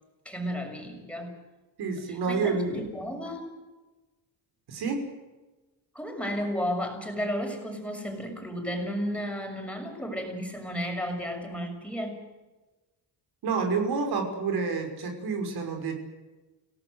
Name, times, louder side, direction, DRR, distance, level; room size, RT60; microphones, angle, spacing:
voice 1, 0.2-1.3 1.9-3.5 5.9-12.2, equal, 5° left, 3 dB, 6.5 m, -33 dB
voice 2, 1.8-2.9 4.7-5.0 13.4-15.9, right 4 dB, 65° right, 4 dB, 5.9 m, -28 dB
29.5 x 18.0 x 8.0 m, 1.1 s
cardioid pair, 135°, 40 cm